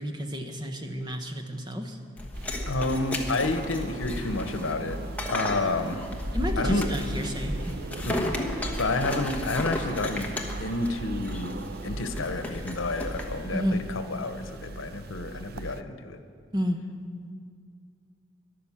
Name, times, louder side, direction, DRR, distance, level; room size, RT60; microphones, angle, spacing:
voice 1, 0.0-2.0 6.3-7.7 13.5-13.9 16.5-16.8, equal, 20° right, 5 dB, 0.9 m, -31 dB
sound 1, 2.2-13.4, left 1 dB, 10° left, 1.1 m, -34 dB
sound 2, 2.3-15.8, right 4 dB, 50° right, 0.4 m, -40 dB
voice 2, 2.7-5.0 5.3-6.0 6.6-6.9 8.1-10.3 10.6-16.2, left 2 dB, 85° left, 8 dB, 1.0 m, -30 dB
13.0 x 11.5 x 7.3 m, 2.2 s
head